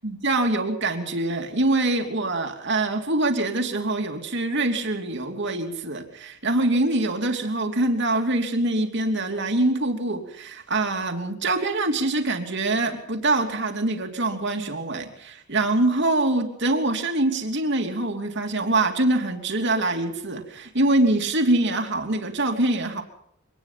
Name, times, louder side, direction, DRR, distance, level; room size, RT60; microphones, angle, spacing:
voice 1, 0.0-23.0, right 2 dB, 60° right, 4 dB, 3.1 m, -24 dB
24.5 x 19.0 x 5.9 m, 0.68 s
head